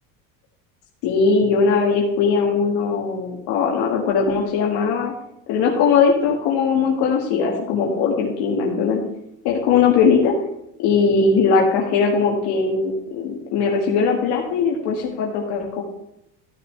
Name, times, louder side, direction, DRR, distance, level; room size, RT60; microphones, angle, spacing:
voice 1, 1.0-5.1 5.5-9.0 9.4-10.3 10.8-15.8, left 5 dB, 70° left, -1 dB, 1.8 m, -19 dB
14.5 x 6.7 x 3.3 m, 0.81 s
supercardioid pair, 105°, 40 cm